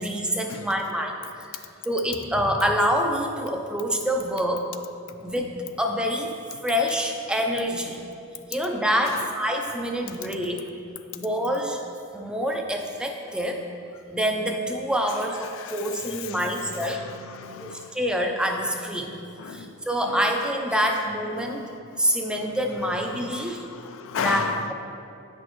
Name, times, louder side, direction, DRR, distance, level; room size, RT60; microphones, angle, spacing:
voice 1, 0.0-1.5 1.9-4.6 5.2-6.4 6.6-8.0 8.5-10.6 11.1-11.8 12.1-13.6 14.1-17.0 17.6-19.1 19.5-21.7 22.0-23.6 24.2-24.4, equal, 5° right, 2 dB, 0.5 m, -26 dB
voice 2, 15.1-18.0 19.4-20.4 20.7-21.0 21.3-24.7, left 6 dB, 65° left, 8 dB, 0.4 m, -37 dB
8.6 x 6.1 x 3.0 m, 2.6 s
head